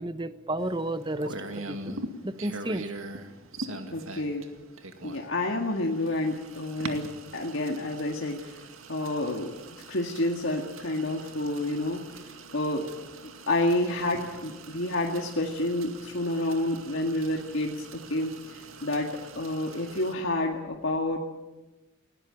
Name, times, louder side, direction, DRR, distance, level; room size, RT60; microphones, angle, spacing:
voice 1, 0.0-2.0 2.2-2.9, right 1 dB, 20° right, 12 dB, 0.9 m, -32 dB
sound 1, 0.6-20.1, right 2 dB, 80° right, 2.2 m, -43 dB
voice 2, 3.9-4.4 5.0-8.6 8.9-9.5 9.9-12.9 13.5-19.1 19.4-21.2, left 1 dB, 65° left, 1 dB, 2.0 m, -29 dB
19.5 x 17.0 x 8.9 m, 1.1 s
head